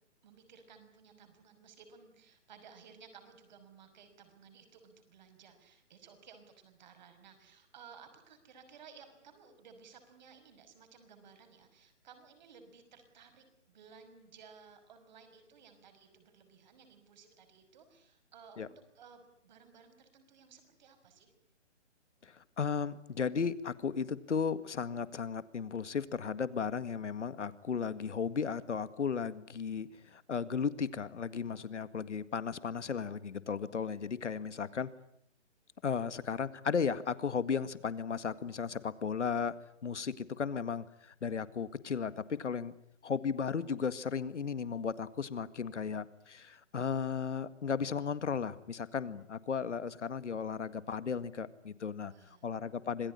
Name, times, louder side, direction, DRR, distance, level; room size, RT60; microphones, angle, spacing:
voice 1, 0.2-21.3 31.4-31.8 39.9-40.1 49.0-49.2 52.0-52.5, right 6 dB, 35° right, 8 dB, 5.8 m, -57 dB
voice 2, 22.2-34.9 35.8-39.5 39.8-42.7 43.0-52.1 52.4-53.1, left 6 dB, 75° left, 13 dB, 2.0 m, -35 dB
26.5 x 19.5 x 10.0 m, 0.73 s
hypercardioid pair, 160°, 36 cm